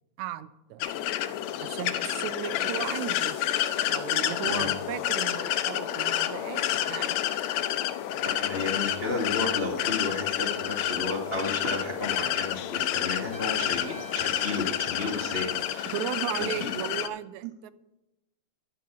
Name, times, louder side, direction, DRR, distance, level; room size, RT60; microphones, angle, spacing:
voice 1, 0.2-0.9 1.6-3.4 3.9-7.2 15.9-17.7, right 12 dB, 80° right, 14 dB, 1.9 m, -36 dB
sound 1, 0.8-17.1, left 12 dB, 80° left, 1.8 m, -29 dB
voice 2, 8.2-15.9 16.5-16.7, left 3 dB, 35° left, -1 dB, 0.9 m, -32 dB
Trumpet, 13.3-16.2, right 1 dB, 20° right, 1.4 m, -46 dB
10.0 x 6.0 x 8.4 m, 0.93 s
omnidirectional pair, 3.4 m